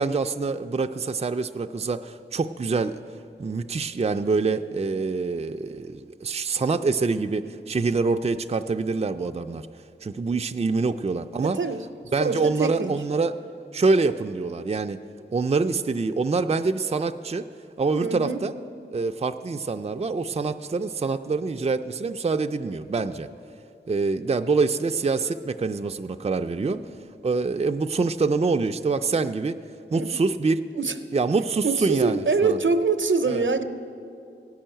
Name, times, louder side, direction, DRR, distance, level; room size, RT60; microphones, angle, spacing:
voice 1, 0.0-3.0 3.4-9.7 10.0-11.6 12.1-13.3 13.7-15.0 15.3-17.5 17.8-18.5 18.9-23.3 23.9-26.8 27.2-29.6 29.9-30.6 31.1-32.6 33.3-33.4, right 4 dB, 30° right, 7 dB, 0.3 m, -25 dB
voice 2, 11.4-11.9 12.2-13.0 18.0-18.4 26.7-26.8 29.9-30.2 30.8-30.9 31.6-33.6, right 4 dB, 70° right, 10 dB, 0.6 m, -25 dB
16.0 x 5.5 x 8.9 m, 2.6 s
wide cardioid pair, 40°, 20 cm